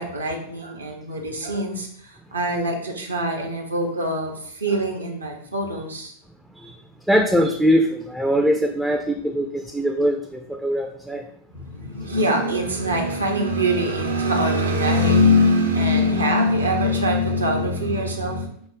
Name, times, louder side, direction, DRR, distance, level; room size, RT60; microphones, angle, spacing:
voice 1, 0.0-6.1 11.5-18.5, left 1 dB, 75° right, 2 dB, 0.7 m, -22 dB
voice 2, 7.1-11.2, equal, ahead, 3 dB, 0.3 m, -21 dB
5.0 x 2.0 x 3.5 m, 0.63 s
figure-of-eight pair, 90°, 0 cm